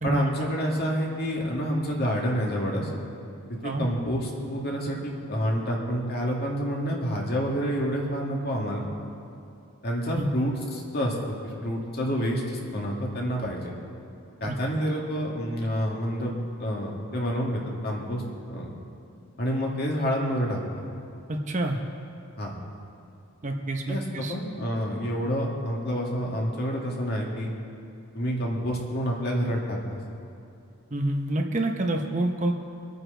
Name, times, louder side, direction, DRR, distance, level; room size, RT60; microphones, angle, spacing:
voice 1, 0.0-2.9 3.6-8.9 9.8-13.7 14.4-16.3 16.6-18.2 18.5-18.7 19.4-20.6 22.4-22.6 23.9-27.5 28.1-30.0, equal, 45° left, -2 dB, 2.1 m, -28 dB
voice 2, 21.3-21.8 23.4-24.3 30.9-32.5, right 1 dB, 35° right, 2 dB, 0.9 m, -27 dB
24.5 x 9.3 x 3.9 m, 2.6 s
head